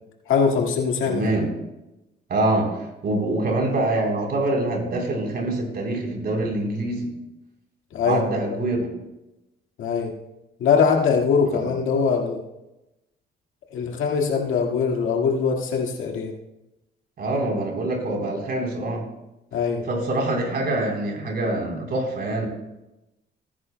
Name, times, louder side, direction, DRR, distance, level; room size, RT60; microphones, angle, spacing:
voice 1, 0.3-1.2 7.9-8.6 9.8-10.1 10.6-12.4 13.7-16.3 19.5-19.8, left 5 dB, 85° left, 1 dB, 1.9 m, -22 dB
voice 2, 1.1-1.5 2.3-7.1 8.0-8.9 11.5-11.7 17.2-19.0 19.9-22.5, right 2 dB, 55° right, 0 dB, 3.7 m, -25 dB
19.5 x 9.9 x 2.2 m, 0.94 s
cardioid pair, 90°, 20 cm